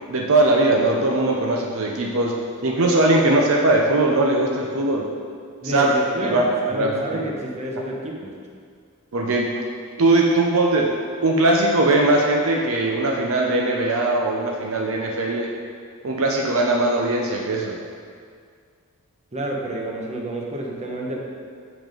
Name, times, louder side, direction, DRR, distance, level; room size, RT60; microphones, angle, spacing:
voice 1, 0.1-2.3 2.6-5.1 5.6-5.9 6.2-6.4 6.7-7.2 9.1-9.5 10.0-10.9 11.2-15.5 16.0-17.8, right 2 dB, 65° right, 0 dB, 0.8 m, -20 dB
voice 2, 5.6-8.3 19.3-21.2, right 1 dB, 30° right, -2 dB, 1.1 m, -29 dB
7.2 x 6.1 x 5.1 m, 2.1 s
head